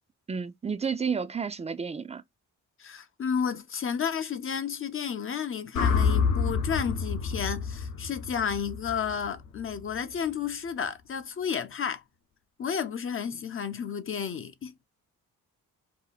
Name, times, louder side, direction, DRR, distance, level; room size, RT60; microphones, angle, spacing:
voice 1, 0.3-2.2, right 6 dB, 20° right, 0.4 m, -31 dB
voice 2, 2.8-12.0 12.6-14.7, left 7 dB, 40° left, 0.5 m, -32 dB
sound 1, 5.8-10.0, left 5 dB, 65° left, 0.8 m, -28 dB
2.8 x 2.2 x 4.0 m
cardioid pair, 75°, 33 cm